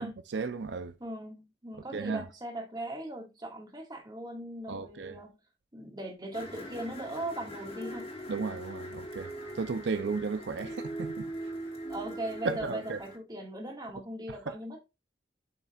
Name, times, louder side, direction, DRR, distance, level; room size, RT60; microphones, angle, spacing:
voice 1, 0.0-1.0 1.9-2.2 4.7-5.2 8.3-11.5 12.4-13.0 14.3-14.6, right 4 dB, 80° right, 0.5 m, -35 dB
voice 2, 1.0-5.3 5.7-8.1 11.9-14.8, right 1 dB, 25° right, 1.8 m, -39 dB
sound 1, 6.3-13.2, right 1 dB, 35° left, 1.6 m, -41 dB
7.5 x 5.7 x 2.4 m
head